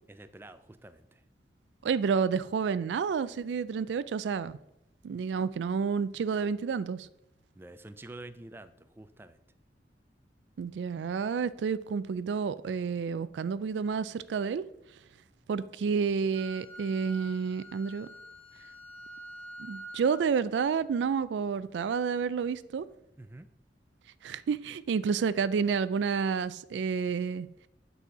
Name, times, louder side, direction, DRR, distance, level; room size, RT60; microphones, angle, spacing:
voice 1, 0.1-1.2 7.6-9.4 23.2-23.5, right 2 dB, 15° right, 0.3 m, -48 dB
voice 2, 1.8-4.6 5.0-7.1 10.6-14.6 15.5-18.1 19.6-22.8 24.2-27.5, right 6 dB, 85° right, 0.3 m, -30 dB
Wind instrument woodwind instrument, 16.3-20.2, equal, 40° left, 2.1 m, -47 dB
8.2 x 4.2 x 4.7 m
head